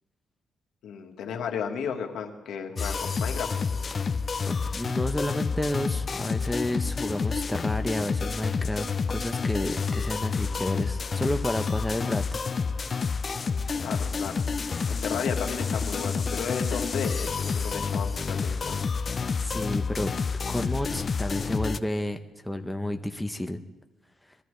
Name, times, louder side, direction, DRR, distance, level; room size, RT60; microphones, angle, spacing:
voice 1, 0.8-3.5 13.7-14.4 14.9-18.8, left 7 dB, 75° left, 3 dB, 1.6 m, -34 dB
sound 1, 2.8-21.8, left 5 dB, 40° left, 0.5 m, -29 dB
voice 2, 4.5-12.4 19.4-20.1 20.5-22.2 22.4-23.6, left 1 dB, 5° left, 5 dB, 0.8 m, -31 dB
21.0 x 12.0 x 3.3 m, 1.1 s
cardioid pair, 90°, 0 cm